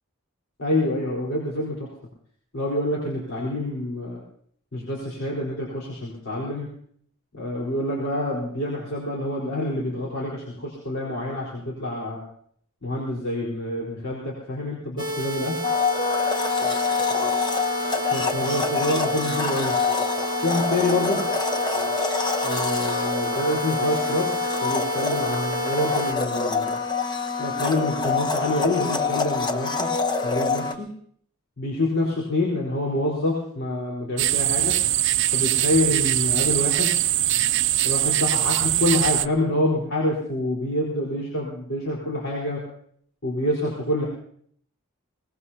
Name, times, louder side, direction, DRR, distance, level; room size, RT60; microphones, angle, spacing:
voice 1, 0.6-1.9 2.5-4.2 4.7-6.7 7.3-12.2 12.8-15.6 18.1-19.7 20.4-21.2 22.4-26.8 27.4-29.9 30.2-30.9 31.6-34.7 35.3-36.9 37.8-42.6 43.2-44.1, left 1 dB, 60° left, -4 dB, 4.3 m, -27 dB
sound 1, 15.0-26.1, right 1 dB, 20° right, 2.3 m, -30 dB
Domestic sounds home sounds, 15.6-30.7, left 5 dB, 20° left, 1.0 m, -26 dB
sound 2, 34.2-39.3, right 14 dB, 60° right, 0.5 m, -22 dB
23.0 x 19.5 x 2.8 m, 0.63 s
head